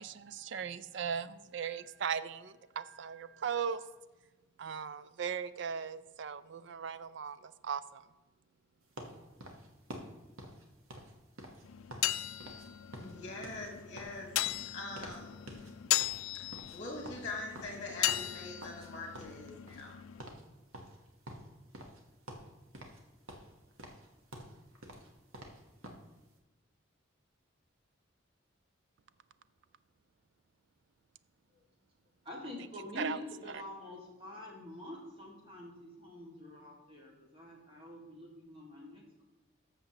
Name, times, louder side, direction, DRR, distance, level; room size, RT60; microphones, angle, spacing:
voice 1, 0.0-3.8 4.6-8.0 33.0-33.2 33.5-33.6, right 7 dB, 60° right, 0.4 m, -38 dB
sound 1, 9.0-12.1 12.4-12.7 12.9-15.2 15.5-15.7 16.0-18.9 19.1-19.9 20.2-20.4 20.7-22.0 22.3-23.0 23.3-26.1, right 1 dB, 85° right, 1.3 m, -48 dB
sound 2, 11.6-20.2, left 14 dB, 75° left, 0.3 m, -37 dB
voice 2, 13.0-14.3 14.7-15.4 16.3-20.0, left 2 dB, 35° left, 1.6 m, -43 dB
voice 3, 32.2-39.3, left 1 dB, 25° right, 1.9 m, -46 dB
13.0 x 6.8 x 2.9 m
head